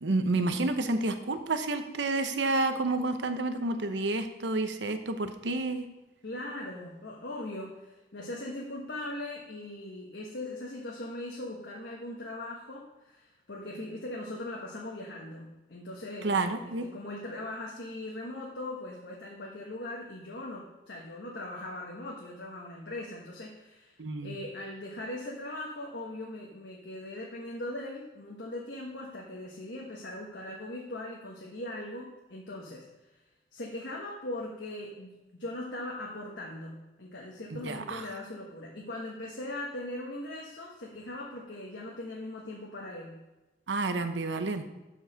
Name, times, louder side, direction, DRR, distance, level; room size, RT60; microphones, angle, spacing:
voice 1, 0.0-5.9 16.2-16.9 24.0-24.4 37.5-38.0 43.7-44.6, right 2 dB, 90° right, 8 dB, 0.8 m, -30 dB
voice 2, 6.2-16.3 16.8-32.9 33.5-43.2, left 1 dB, 80° left, -2 dB, 1.3 m, -40 dB
7.1 x 6.5 x 6.5 m, 1.1 s
head